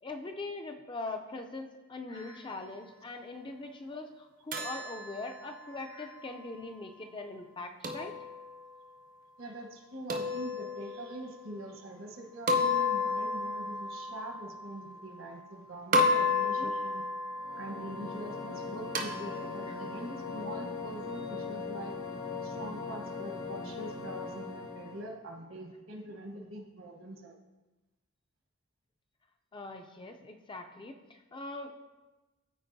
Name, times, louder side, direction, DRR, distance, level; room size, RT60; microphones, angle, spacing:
voice 1, 0.0-8.1 16.4-16.7 19.7-19.8 29.5-31.7, left 2 dB, 20° left, 4 dB, 0.3 m, -42 dB
sound 1, 4.5-6.6 7.8-8.8 10.1-11.3 12.5-15.6 15.9-20.3, left 3 dB, 40° right, 0.5 m, -33 dB
voice 2, 9.4-17.0 17.5-22.0 22.4-27.3, right 1 dB, 65° right, 3 dB, 1.1 m, -44 dB
sound 2, 17.3-25.1, left 4 dB, 80° left, 1.4 m, -40 dB
13.0 x 4.5 x 2.6 m, 1.1 s
head